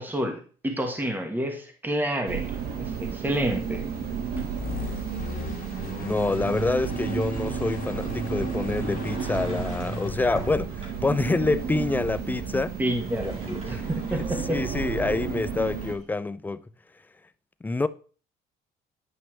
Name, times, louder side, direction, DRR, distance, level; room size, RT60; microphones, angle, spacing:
voice 1, 0.0-3.8 12.8-14.6, right 1 dB, 10° right, 1.6 m, -29 dB
sound 1, 2.3-15.9, right 7 dB, 60° right, 1.4 m, -32 dB
sound 2, 4.3-10.1, left 3 dB, 55° left, 1.9 m, -37 dB
voice 2, 6.0-12.8 13.6-13.9 14.5-16.7 17.6-17.9, left 3 dB, 10° left, 0.4 m, -27 dB
Sliding door, 8.7-11.2 12.9-16.1, right 2 dB, 35° right, 2.8 m, -42 dB
9.6 x 5.5 x 3.3 m
cardioid pair, 110°, 17 cm